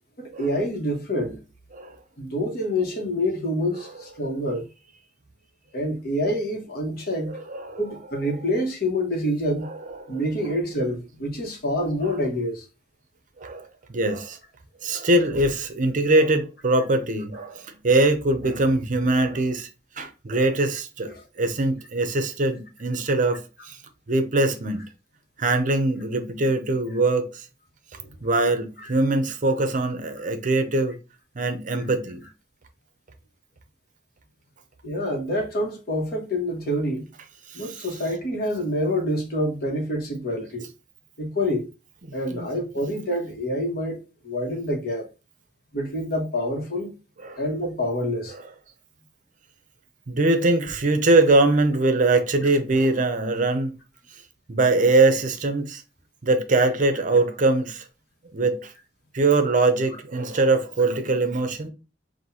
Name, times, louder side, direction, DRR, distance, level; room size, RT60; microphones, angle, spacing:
voice 1, 0.2-1.4 2.2-4.7 5.7-7.3 7.8-9.7 10.1-12.6 28.0-28.1 34.8-37.1 37.5-40.7 41.2-41.7 42.1-44.0 44.2-45.1 45.7-46.9 47.4-48.3, equal, 55° left, 1.3 m, -27 dB
voice 2, 3.7-4.3 7.2-8.4 9.6-10.5 12.0-12.2 13.4-14.4 14.8-19.7 20.0-23.8 24.1-24.8 25.4-27.4 28.2-31.0 31.4-32.2 37.5-38.0 42.0-42.5 42.7-42.8 47.2-47.5 48.3-48.4 50.1-53.7 54.5-55.8 56.2-57.8 58.3-58.7 59.1-61.7, right 2 dB, 45° right, 0.7 m, -23 dB
5.9 x 2.6 x 2.8 m
head